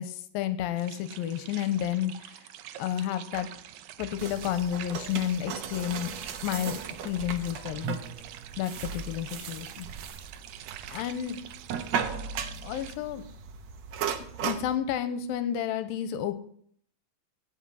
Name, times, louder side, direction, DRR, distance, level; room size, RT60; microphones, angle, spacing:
voice 1, 0.0-2.1 2.8-3.5 4.0-6.1 6.4-8.0 8.6-9.9 10.9-11.4 12.6-13.2 14.4-16.4, left 10 dB, 90° left, 11 dB, 2.5 m, -31 dB
sound 1, 0.8-13.0, right 12 dB, 85° right, 1.7 m, -46 dB
sound 2, 4.2-14.8, right 7 dB, 70° right, 1.7 m, -37 dB
16.5 x 5.8 x 5.6 m, 0.62 s
omnidirectional pair, 4.1 m